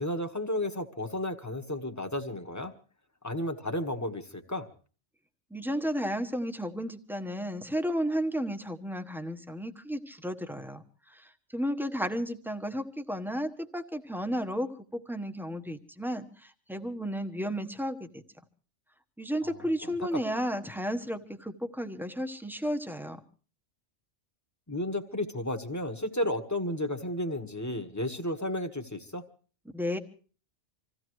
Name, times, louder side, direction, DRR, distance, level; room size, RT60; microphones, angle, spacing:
voice 1, 0.0-2.7 3.2-4.7 19.4-19.5 19.8-19.9 24.7-29.3, left 1 dB, 15° left, 5 dB, 1.3 m, -33 dB
voice 2, 5.5-18.2 19.2-23.2 29.7-30.0, equal, ahead, 7 dB, 1.1 m, -33 dB
26.5 x 16.0 x 3.1 m, 0.39 s
omnidirectional pair, 1.2 m